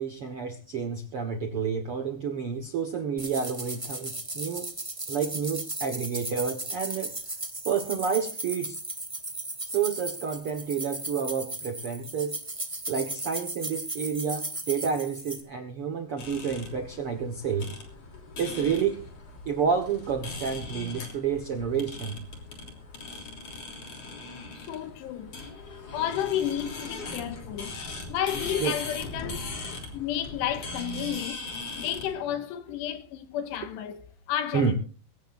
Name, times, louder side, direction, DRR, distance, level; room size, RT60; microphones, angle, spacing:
voice 1, 0.0-4.7 5.1-7.1 7.6-8.8 9.6-12.4 12.9-17.7 18.4-19.0 19.4-22.2 23.0-23.3 27.0-27.2 28.6-28.7 34.5-34.7, right 6 dB, 85° right, 1.2 m, -29 dB
sound 1, 3.2-15.4, right 2 dB, 55° right, 0.3 m, -36 dB
sound 2, 16.2-32.1, left 3 dB, 40° left, 3.9 m, -40 dB
voice 2, 24.6-29.6 29.9-31.5 31.8-34.7, left 10 dB, 85° left, 3.7 m, -32 dB
22.0 x 17.5 x 2.6 m
omnidirectional pair, 4.9 m